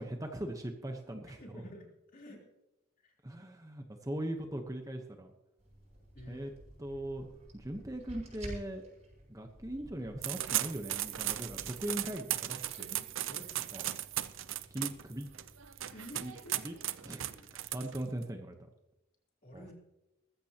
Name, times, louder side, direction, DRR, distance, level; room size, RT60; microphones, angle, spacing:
voice 1, 0.0-1.6 2.3-2.4 3.2-5.3 6.3-6.5 6.8-7.3 7.5-8.8 9.3-12.9 13.7-13.8 14.7-15.3 16.1-16.3 16.6-16.8 17.0-17.2 17.7-18.5 19.5-19.7, right 1 dB, 15° right, 4 dB, 1.0 m, -40 dB
voice 2, 1.4-2.4 3.0-3.1 6.1-6.5 12.8-13.8 15.9-16.6 17.2-17.6 18.0-18.3 19.4-19.7, equal, 40° left, -1 dB, 3.6 m, -51 dB
sound 1, 5.6-17.7, right 1 dB, 30° right, 6.2 m, -53 dB
sound 2, 10.2-18.2, right 13 dB, 70° right, 0.6 m, -37 dB
20.0 x 14.5 x 2.9 m, 0.93 s
head